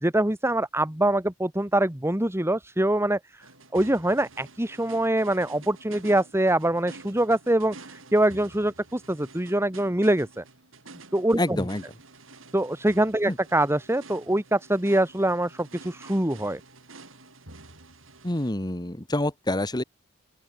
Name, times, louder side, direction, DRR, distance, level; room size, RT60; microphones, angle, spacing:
voice 1, 0.0-3.2 3.7-10.4 11.1-11.6 12.5-16.6, right 1 dB, 15° right, 1.8 m, -24 dB
sound 1, 3.4-18.5, right 3 dB, 80° right, 6.6 m, -49 dB
voice 2, 11.4-11.8 13.2-13.4 18.2-19.8, left 1 dB, 20° left, 2.0 m, -27 dB
open air
head